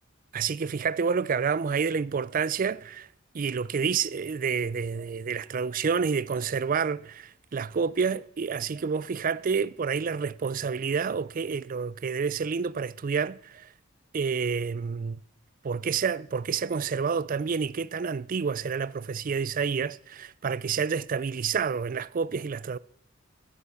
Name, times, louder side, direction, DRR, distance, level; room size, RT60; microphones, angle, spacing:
voice 1, 0.3-3.1 3.3-13.7 14.1-15.2 15.6-22.8, right 6 dB, 40° right, 0.4 m, -29 dB
15.0 x 8.2 x 7.1 m
head